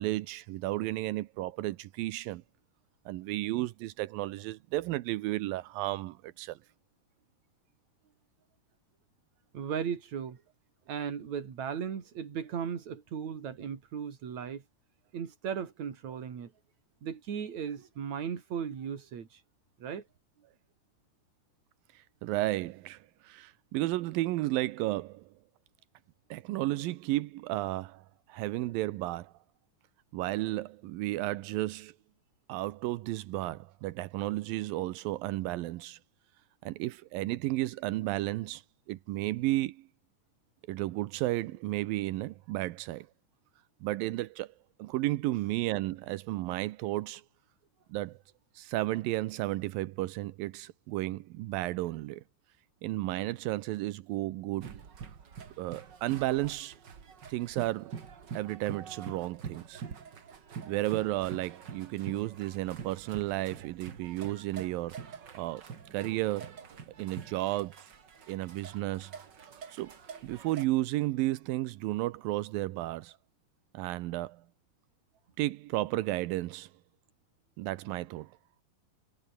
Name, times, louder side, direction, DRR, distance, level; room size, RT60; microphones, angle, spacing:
voice 1, 0.0-2.4 3.1-6.6 21.9-25.2 26.3-28.0 28.3-29.3 30.1-31.9 32.5-36.0 36.6-38.6 38.9-39.8 40.7-43.1 43.8-44.5 44.8-47.2 47.9-48.2 48.6-52.2 52.8-54.8 55.6-56.8 57.3-58.0 58.3-59.8 60.7-65.7 65.9-66.6 67.0-67.9 68.3-69.1 69.7-69.9 70.2-73.2 73.7-74.4 75.4-76.7 77.6-78.3, right 17 dB, 85° right, 2.6 m, -33 dB
voice 2, 9.5-10.4 10.9-14.6 15.1-16.5 17.0-19.4 19.8-20.0, right 7 dB, 55° right, 4.0 m, -36 dB
sound 1, 54.6-70.7, right 6 dB, 40° right, 2.1 m, -46 dB
omnidirectional pair, 4.0 m